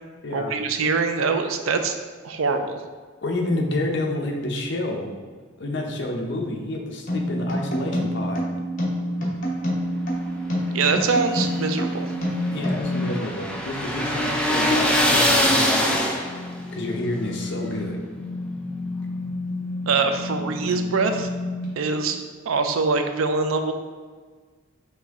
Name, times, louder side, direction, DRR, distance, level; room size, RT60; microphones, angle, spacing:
voice 1, 0.3-1.9 2.2-2.8 10.7-12.1 19.9-21.3 21.8-23.7, right 4 dB, 85° right, 6 dB, 0.4 m, -23 dB
voice 2, 3.2-5.1 5.6-8.5 12.5-16.0 16.7-18.0 20.7-20.8, left 1 dB, 55° left, 1 dB, 0.6 m, -29 dB
sound 1, 7.1-12.8, equal, 40° left, 1.0 m, -27 dB
sound 2, 11.1-16.6, equal, 5° left, 0.3 m, -23 dB
sound 3, 12.0-21.6, left 2 dB, 55° right, 1.2 m, -33 dB
5.7 x 2.7 x 3.5 m, 1.5 s
head